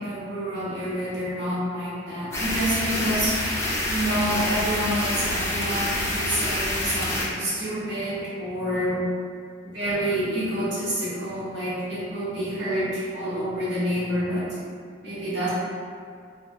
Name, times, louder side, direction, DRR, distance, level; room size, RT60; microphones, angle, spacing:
voice 1, 0.0-3.4 3.9-9.1 9.6-14.6 15.0-15.5, equal, 65° right, -9 dB, 0.8 m, -28 dB
sound 1, 2.3-7.3, left 1 dB, 15° left, 0.4 m, -27 dB
2.3 x 2.2 x 2.6 m, 2.2 s
head